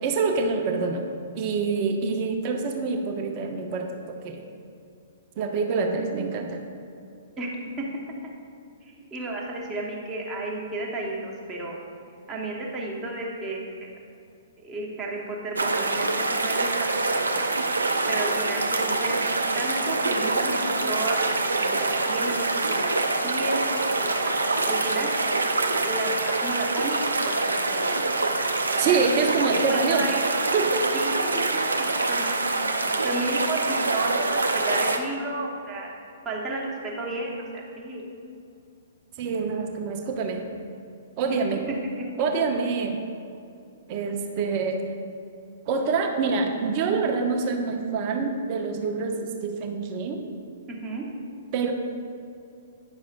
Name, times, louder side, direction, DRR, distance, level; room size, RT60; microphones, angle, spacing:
voice 1, 0.0-1.1 1.3-4.4 5.4-6.6 28.8-30.1 30.5-31.0 39.2-40.4 41.2-41.6 42.2-43.0 43.9-44.8 45.7-50.2 51.5-51.7, right 4 dB, 35° right, 3 dB, 0.8 m, -26 dB
voice 2, 7.4-7.9 8.9-11.8 12.3-13.9 14.6-17.5 18.1-19.3 19.5-23.7 24.0-24.3 24.6-25.1 25.8-27.8 28.9-29.0 29.5-30.5 30.9-31.3 31.5-32.7 33.0-35.9 36.2-38.0 41.3-42.2 50.7-51.0, right 2 dB, 15° right, -4 dB, 1.2 m, -33 dB
sound 1, 15.6-35.0, right 3 dB, 75° right, 0.6 m, -25 dB
9.6 x 6.2 x 2.5 m, 2.5 s
figure-of-eight pair, 115°, 0 cm